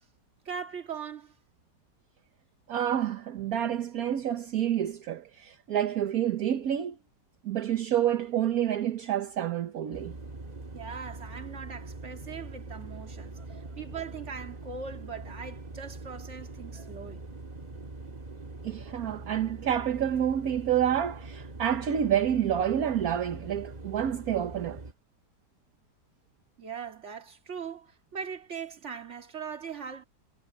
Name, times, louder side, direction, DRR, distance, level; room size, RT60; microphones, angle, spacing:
voice 1, 0.5-1.4 10.7-17.3 26.6-30.0, right 6 dB, 40° right, 2.1 m, -40 dB
voice 2, 2.7-7.0 7.4-10.1 18.6-24.8, right 10 dB, 60° right, 1.4 m, -28 dB
sound 1, 9.9-24.9, right 2 dB, 25° right, 1.7 m, -43 dB
omnidirectional pair, 1.8 m